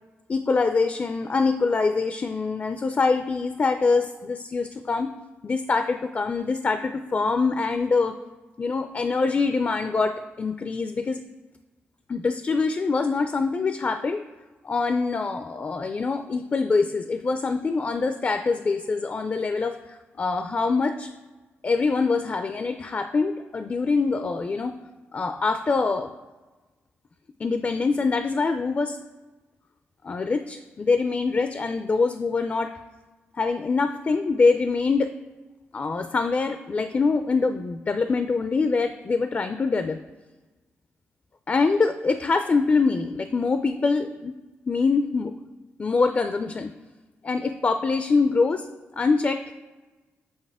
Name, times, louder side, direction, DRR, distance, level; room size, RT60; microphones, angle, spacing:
voice 1, 0.3-5.1 5.4-8.2 8.6-11.2 12.1-14.2 14.6-21.1 21.6-24.8 25.1-26.1 27.4-29.0 30.0-32.7 33.3-35.2 35.7-40.0 41.5-44.3 44.7-45.3 45.8-46.7 47.2-48.7 48.9-49.5, left 4 dB, 35° left, 8 dB, 0.4 m, -24 dB
7.8 x 4.1 x 3.5 m, 1.2 s
cardioid pair, 70°, 5 cm